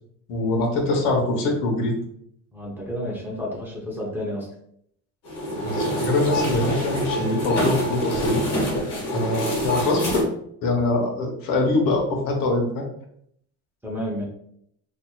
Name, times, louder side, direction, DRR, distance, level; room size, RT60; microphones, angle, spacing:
voice 1, 0.3-2.0 5.5-8.4 9.1-10.3 10.6-12.8, left 2 dB, 80° left, 2 dB, 1.0 m, -23 dB
voice 2, 2.5-4.5 13.8-14.3, equal, 5° right, -3 dB, 0.5 m, -30 dB
sound 1, 5.2-10.2, equal, 50° left, 1.4 m, -25 dB
4.3 x 2.7 x 2.3 m, 0.70 s
cardioid pair, 165°, 34 cm